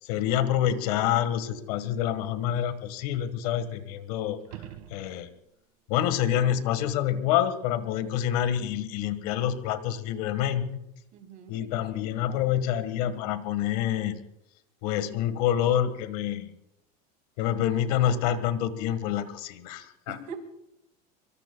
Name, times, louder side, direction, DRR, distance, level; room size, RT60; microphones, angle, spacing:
voice 1, 0.0-4.4 4.9-5.3 5.9-10.8 11.5-14.2 14.8-16.5 17.4-20.3, left 10 dB, 70° left, 12 dB, 1.6 m, -27 dB
voice 2, 3.6-3.9 11.1-11.8 20.1-20.4, right 5 dB, 45° right, 3 dB, 3.8 m, -44 dB
sound 1, 4.4-5.6 10.5-10.6, right 12 dB, 75° right, 1.8 m, -45 dB
25.5 x 24.5 x 2.3 m, 0.82 s
cardioid pair, 165°, 20 cm